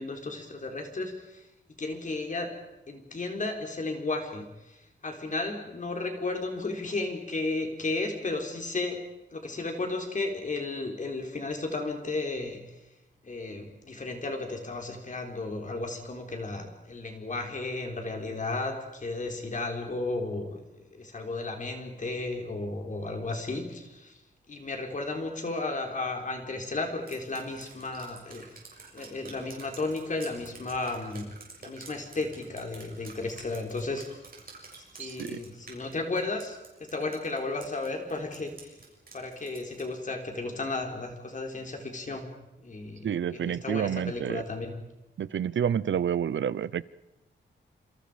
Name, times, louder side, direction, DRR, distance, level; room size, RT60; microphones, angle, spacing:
voice 1, 0.0-1.4 1.8-2.5 2.9-9.0 9.3-12.6 13.2-24.2 24.5-28.4 28.9-31.3 31.6-34.0 34.9-38.7 39.1-42.3 42.6-44.8, left 3 dB, 40° left, 3 dB, 4.1 m, -34 dB
Drip, 27.1-40.0, right 4 dB, 50° right, 6.6 m, -50 dB
voice 2, 35.0-35.4 43.0-44.4 45.2-46.8, right 8 dB, 75° right, 19 dB, 0.8 m, -29 dB
28.0 x 27.5 x 5.2 m, 0.96 s
wide cardioid pair, 140°, 20 cm